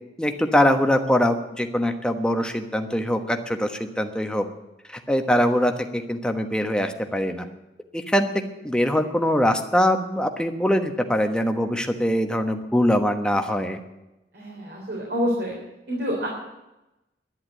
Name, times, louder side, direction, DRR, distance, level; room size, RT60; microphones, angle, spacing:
voice 1, 0.2-4.5 5.1-7.4 7.9-8.3 8.6-13.8, equal, 5° left, 5 dB, 1.2 m, -22 dB
voice 2, 14.3-15.5 15.9-16.3, equal, 60° right, -2 dB, 3.6 m, -27 dB
11.0 x 10.5 x 8.9 m, 0.94 s
head